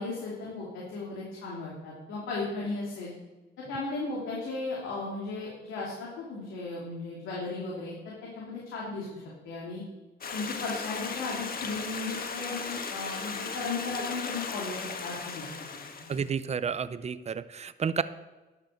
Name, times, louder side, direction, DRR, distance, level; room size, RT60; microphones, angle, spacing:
voice 1, 0.0-3.1 3.7-7.9 8.4-9.8 10.3-15.5 16.0-16.1, left 3 dB, 85° left, -5 dB, 2.8 m, -36 dB
Stream, 10.2-16.3, left 5 dB, 50° left, 1.5 m, -37 dB
voice 2, 16.1-18.0, right 6 dB, 35° right, 14 dB, 0.6 m, -31 dB
11.5 x 6.8 x 6.6 m, 1.2 s
cardioid pair, 90°, 20 cm